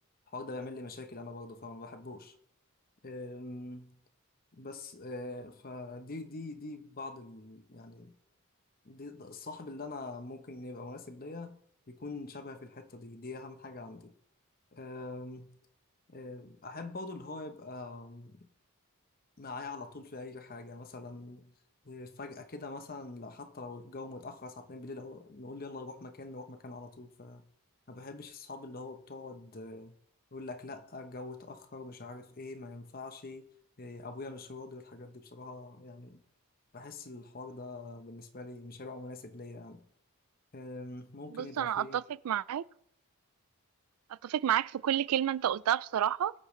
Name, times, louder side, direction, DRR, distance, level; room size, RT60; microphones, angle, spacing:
voice 1, 0.3-2.4 3.0-4.0 4.5-8.1 8.8-11.6 11.9-14.1 14.7-15.7 16.1-18.5 19.4-21.5 21.8-27.5 27.9-29.9 30.3-33.5 33.8-36.2 36.7-39.9 40.5-42.0, left 2 dB, 40° left, 0.9 m, -44 dB
voice 2, 41.3-42.6 44.2-46.3, right 10 dB, 80° right, 0.3 m, -30 dB
21.0 x 8.3 x 3.2 m
head